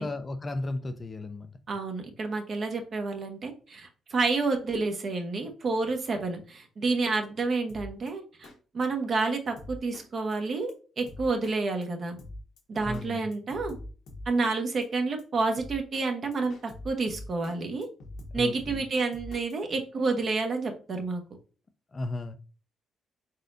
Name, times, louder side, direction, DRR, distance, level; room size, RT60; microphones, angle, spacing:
voice 1, 0.0-1.5 12.8-13.2 18.3-18.8 21.9-22.4, left 2 dB, 30° left, 0.5 m, -34 dB
voice 2, 1.7-12.2 12.7-13.8 14.3-17.9 18.3-21.2, right 3 dB, 50° right, 1.1 m, -29 dB
Drum kit, 7.7-8.1 8.4-8.6 8.8-8.9 9.2-9.3 9.6-10.1 10.3-10.4 10.7-10.8 11.1-11.6 11.8-11.9 12.2-13.1 13.3-14.6 14.8-14.9 15.2-15.3 15.6-16.1 16.3-17.6 17.8-19.5, left 1 dB, 70° left, 1.0 m, -43 dB
4.1 x 3.9 x 2.5 m
cardioid pair, 90°, 0 cm